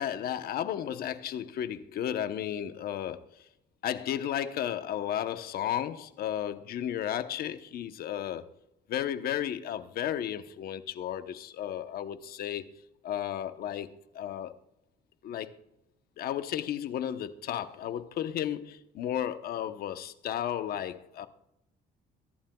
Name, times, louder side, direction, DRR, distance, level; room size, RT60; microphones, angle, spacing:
voice 1, 0.0-3.3 3.8-8.4 8.9-12.7 13.0-13.9 14.1-14.5 15.2-15.6 16.2-21.3, left 10 dB, 65° left, 1.0 m, -33 dB
23.5 x 11.5 x 2.3 m
cardioid pair, 110°, 17 cm